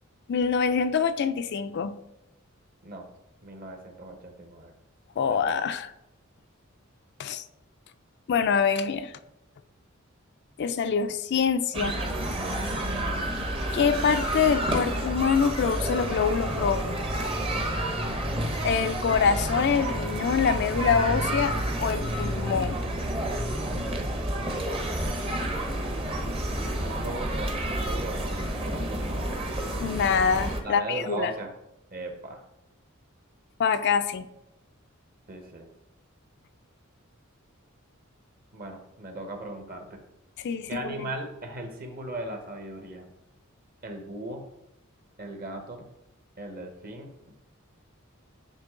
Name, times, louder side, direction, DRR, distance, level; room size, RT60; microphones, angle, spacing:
voice 1, 0.3-2.0 5.2-5.9 7.2-7.4 8.3-9.1 10.6-12.0 13.7-17.0 18.6-22.8 29.8-31.3 33.6-34.3 40.4-41.1, left 6 dB, 55° left, 10 dB, 0.4 m, -25 dB
voice 2, 3.4-4.7 5.3-5.5 26.7-29.3 30.6-31.5 31.9-32.4 35.3-35.6 38.5-40.0 40.7-43.0 43.8-44.4 45.2-45.9 46.4-47.1, right 2 dB, 45° right, 4 dB, 1.1 m, -37 dB
sound 1, 11.7-30.6, right 1 dB, 25° right, 0.8 m, -29 dB
9.6 x 3.2 x 3.7 m, 0.86 s
head